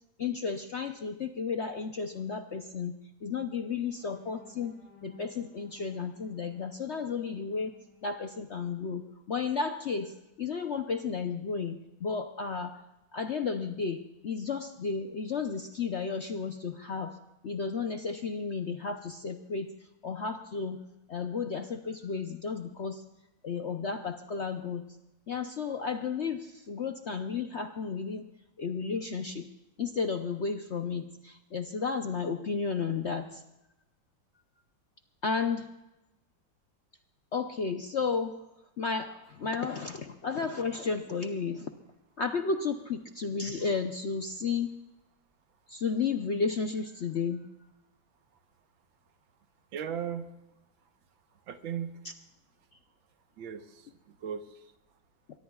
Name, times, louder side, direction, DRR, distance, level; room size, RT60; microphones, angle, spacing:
voice 1, 0.2-7.7 8.0-12.8 13.1-17.2 17.4-20.8 21.1-23.0 23.4-24.9 25.3-28.3 28.6-29.5 29.8-33.4 35.2-35.7 37.3-38.4 38.8-41.7 42.2-44.7 45.7-47.5, left 5 dB, 60° left, 6 dB, 0.7 m, -33 dB
sound 1, 3.7-9.6 10.1-10.3 10.7-10.9, left 2 dB, 85° left, 7.6 m, -59 dB
voice 2, 49.7-50.3 50.8-50.9 51.3-52.1 53.4-54.7, right 8 dB, 90° right, 8 dB, 1.8 m, -38 dB
23.0 x 19.5 x 2.4 m, 0.95 s
omnidirectional pair, 2.1 m